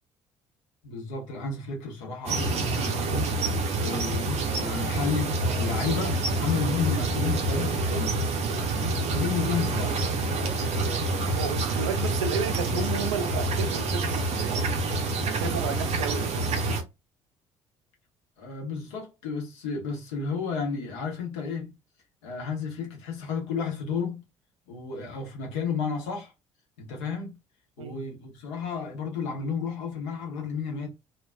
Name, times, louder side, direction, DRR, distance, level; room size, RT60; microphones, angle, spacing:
voice 1, 0.8-3.3 3.8-8.2 8.7-10.0 18.4-21.8 22.2-24.2 24.7-26.3 26.8-27.4 27.8-30.9, left 5 dB, 70° left, 0.9 m, -32 dB
sound 1, 2.3-16.8, right 2 dB, 40° right, 0.7 m, -27 dB
voice 2, 11.3-14.7 15.3-16.4 27.8-28.0, right 6 dB, 75° right, 0.4 m, -33 dB
2.4 x 2.2 x 2.3 m
figure-of-eight pair, 50°, 16 cm